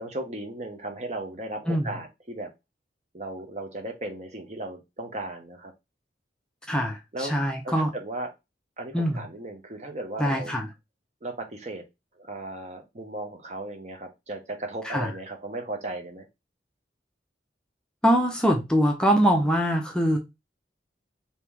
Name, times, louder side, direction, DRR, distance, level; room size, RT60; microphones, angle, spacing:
voice 1, 0.0-2.5 3.1-5.7 7.1-7.3 7.6-8.3 8.8-10.6 11.2-11.8 12.2-16.3, right 2 dB, 40° right, 0.8 m, -36 dB
voice 2, 6.7-7.9 8.9-9.2 10.2-10.7 14.8-15.1 18.0-20.2, equal, 5° left, 0.5 m, -23 dB
3.1 x 2.8 x 3.5 m
head